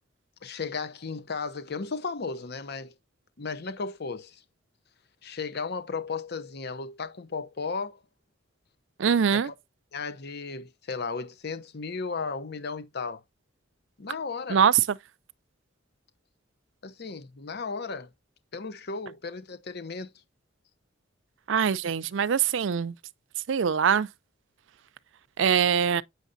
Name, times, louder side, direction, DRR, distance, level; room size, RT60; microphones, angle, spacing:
voice 1, 0.4-2.9 3.4-4.4 5.2-8.0 9.3-9.5 9.9-13.2 14.0-14.6 16.8-18.1 18.5-20.1, left 4 dB, 55° left, 0.8 m, -35 dB
voice 2, 9.0-9.5 14.5-14.8 21.5-22.9 23.5-24.1 25.4-26.0, right 7 dB, 65° right, 0.4 m, -23 dB
8.1 x 6.4 x 2.6 m
head